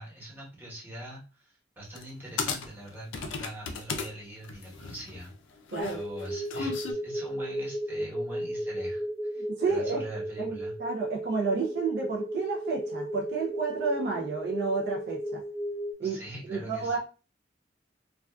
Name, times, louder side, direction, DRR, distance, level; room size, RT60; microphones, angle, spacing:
voice 1, 0.0-5.3 5.8-10.7 16.0-17.0, right 1 dB, 10° right, 1.0 m, -43 dB
sound 1, 2.0-2.1 2.4-4.1 4.4-6.9, left 5 dB, 70° left, 0.4 m, -35 dB
voice 2, 5.7-6.0 9.4-10.0 10.4-15.4 16.0-16.2 16.5-17.0, right 4 dB, 55° right, 0.5 m, -31 dB
sound 2, 5.8-15.9, right 1 dB, 10° left, 0.4 m, -34 dB
2.4 x 2.3 x 2.2 m
head